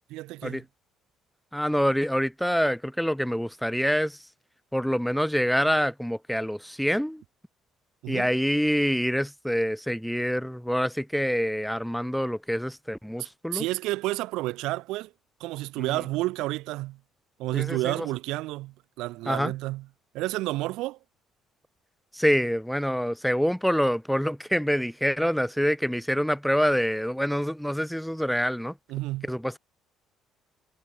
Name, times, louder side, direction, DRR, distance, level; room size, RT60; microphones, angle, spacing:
voice 1, 0.1-0.6 8.0-8.3 13.5-15.1 15.4-17.0 17.4-19.8 20.1-21.0 28.9-29.3, right 19 dB, 90° right, 0.9 m, -30 dB
voice 2, 1.5-4.3 4.7-7.2 8.1-13.7 15.8-16.0 17.5-18.1 19.2-19.5 22.1-28.8 29.2-29.6, equal, ahead, 1.7 m, -26 dB
cardioid pair, 130°, 0 cm